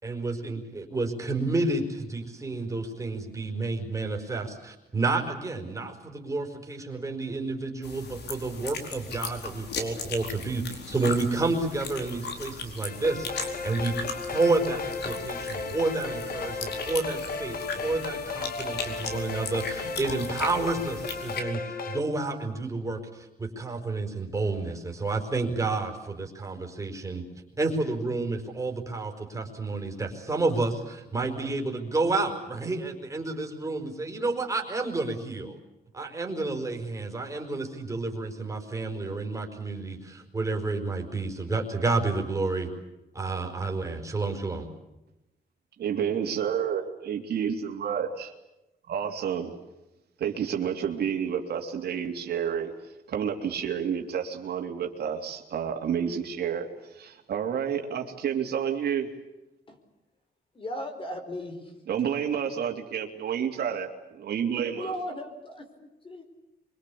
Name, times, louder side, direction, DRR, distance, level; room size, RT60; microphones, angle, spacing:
voice 1, 0.0-13.3 13.6-27.2 27.6-35.6 35.9-42.7 43.1-44.7, right 3 dB, 20° right, 3 dB, 5.0 m, -30 dB
sound 1, 7.8-21.4, left 4 dB, 85° left, 4.6 m, -38 dB
sound 2, 12.8-22.0, left 4 dB, 60° left, 2.5 m, -35 dB
voice 2, 45.8-48.3 48.9-49.5 50.2-52.7 53.1-59.1 61.9-63.9 64.2-64.9, right 8 dB, 75° right, 3 dB, 3.1 m, -30 dB
voice 3, 60.5-61.7 64.8-66.2, equal, 30° left, 6 dB, 4.9 m, -37 dB
26.5 x 24.0 x 8.6 m, 0.96 s
cardioid pair, 130°, 17 cm